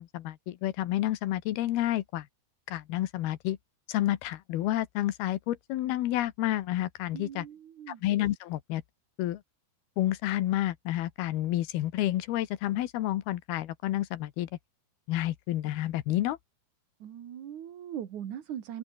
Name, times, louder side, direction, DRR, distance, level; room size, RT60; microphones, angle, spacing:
voice 1, 0.0-2.3 2.7-3.6 3.9-7.5 7.9-8.8 9.2-9.4 10.0-14.5 15.1-16.4, left 14 dB, 75° left, 3.1 m, -30 dB
voice 2, 7.1-8.0 17.0-18.8, right 10 dB, 55° right, 3.0 m, -40 dB
omnidirectional pair, 4.6 m